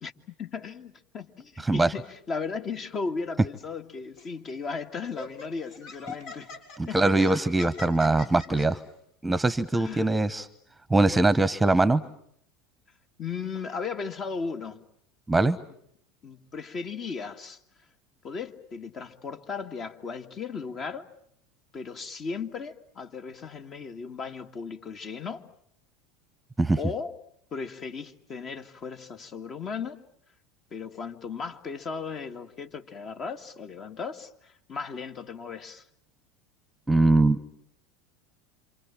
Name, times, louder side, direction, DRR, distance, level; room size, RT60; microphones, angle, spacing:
voice 1, 0.4-6.5 6.9-7.2 9.7-10.1 13.2-14.8 16.2-17.6 18.2-21.1 21.7-25.5 26.8-27.2 27.5-30.0 30.7-35.8, left 5 dB, 40° left, 2.2 m, -36 dB
voice 2, 1.6-1.9 6.8-8.8 9.2-10.5 10.9-12.0 15.3-15.6 26.6-26.8 36.9-37.4, right 2 dB, 10° right, 1.2 m, -22 dB
Laughter, 4.2-4.4 5.0-8.7, left 4 dB, 65° left, 7.1 m, -41 dB
28.5 x 27.5 x 7.4 m
hypercardioid pair, 85°, 0 cm